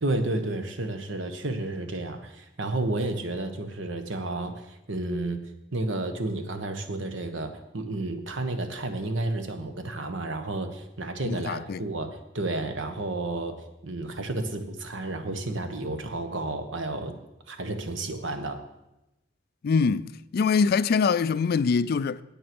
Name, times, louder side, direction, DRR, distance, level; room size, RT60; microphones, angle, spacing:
voice 1, 0.0-5.4 5.7-13.5 13.8-17.1 17.5-18.6, right 2 dB, 75° right, 1.3 m, -31 dB
voice 2, 11.3-11.8 19.6-22.2, left 5 dB, 50° left, 0.4 m, -24 dB
9.6 x 8.7 x 6.1 m
head